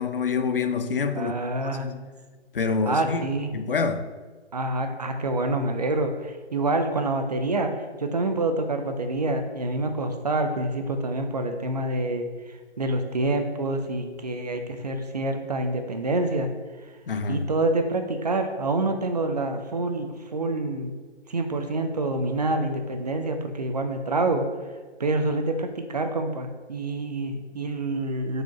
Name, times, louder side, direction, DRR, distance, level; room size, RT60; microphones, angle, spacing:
voice 1, 0.0-1.3 1.8-2.0 2.5-3.2 3.5-4.1 17.1-17.5, left 5 dB, 55° left, 0.7 m, -26 dB
voice 2, 1.1-1.9 2.9-3.5 4.5-7.7 8.0-12.3 12.8-16.5 17.3-20.9 21.3-24.4 25.0-28.4, right 2 dB, 35° right, 0.6 m, -27 dB
4.9 x 4.7 x 5.6 m
hypercardioid pair, 165°, 34 cm